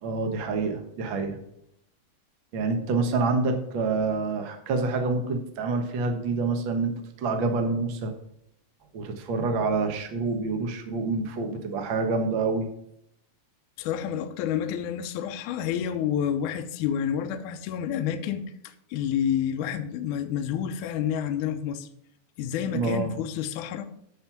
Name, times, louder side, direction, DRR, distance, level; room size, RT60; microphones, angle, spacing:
voice 1, 0.0-1.4 2.5-6.9 7.2-8.1 8.9-12.7 22.7-23.1, right 3 dB, 65° right, 4 dB, 1.1 m, -27 dB
voice 2, 13.8-21.9 22.4-23.9, left 9 dB, 75° left, 7 dB, 1.9 m, -29 dB
13.0 x 4.4 x 5.9 m, 0.77 s
omnidirectional pair, 4.3 m